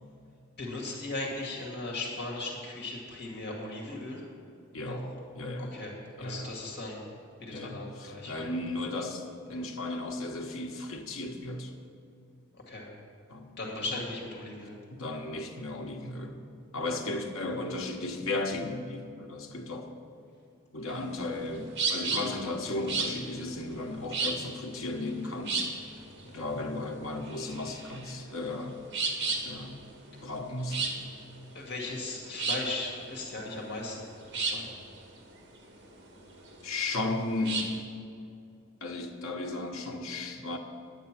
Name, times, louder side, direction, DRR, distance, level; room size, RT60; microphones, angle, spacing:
voice 1, 0.6-4.2 4.9-5.0 5.6-5.9 6.2-7.0 7.4-8.5 12.5-12.9 13.6-14.8 31.5-34.0 34.4-34.7, left 2 dB, 50° left, -1 dB, 2.1 m, -37 dB
voice 2, 4.7-5.0 5.3-5.8 6.2-6.5 7.5-11.7 13.3-13.9 14.9-16.4 16.7-19.9 20.7-25.7 26.2-28.9 29.4-29.8 30.2-30.9 31.4-31.5 36.6-37.6 38.8-40.6, left 2 dB, 75° left, 3 dB, 1.2 m, -35 dB
sound 1, 20.9-37.8, right 4 dB, 55° right, 1.6 m, -34 dB
10.5 x 9.2 x 6.0 m, 2.5 s
head